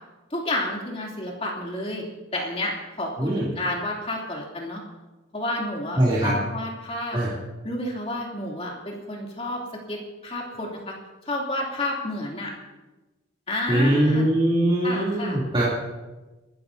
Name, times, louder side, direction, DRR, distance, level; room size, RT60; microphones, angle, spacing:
voice 1, 0.3-2.0 2.3-2.7 3.0-4.8 5.3-7.2 7.6-9.6 9.9-10.9 11.2-12.5 13.5-14.3 14.8-15.4, left 1 dB, 30° left, -2 dB, 3.2 m, -30 dB
voice 2, 6.0-6.3 7.1-7.3 13.7-15.6, right 1 dB, 25° right, -9 dB, 3.2 m, -21 dB
30.0 x 13.5 x 2.8 m, 1.2 s
head